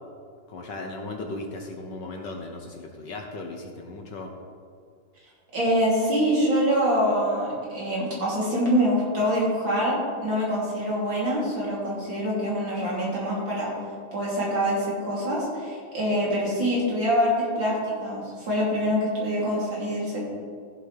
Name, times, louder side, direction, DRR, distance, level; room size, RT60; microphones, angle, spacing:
voice 1, 0.5-4.3, left 2 dB, 60° left, 2 dB, 1.4 m, -36 dB
voice 2, 5.5-10.0 10.2-13.7 14.1-20.2, equal, 60° right, -6 dB, 3.8 m, -25 dB
15.0 x 7.6 x 3.4 m, 2.2 s
omnidirectional pair, 2.4 m